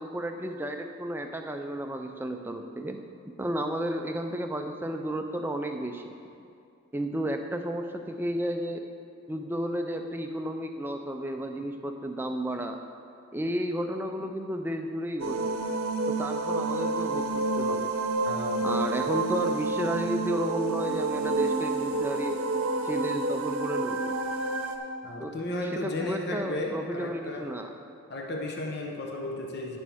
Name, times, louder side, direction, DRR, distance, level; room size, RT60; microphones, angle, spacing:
voice 1, 0.0-3.0 3.4-6.1 6.9-8.8 9.3-12.8 13.3-15.6 16.1-17.9 18.6-22.4 22.8-24.1 25.2-25.4 25.6-27.7, right 1 dB, 10° right, 4 dB, 0.4 m, -32 dB
sound 1, 15.2-24.8, right 3 dB, 70° right, 0.8 m, -29 dB
voice 2, 18.3-18.6 25.0-27.5 28.1-29.8, left 1 dB, 50° left, 0 dB, 1.0 m, -34 dB
16.5 x 6.2 x 3.5 m, 2.5 s
head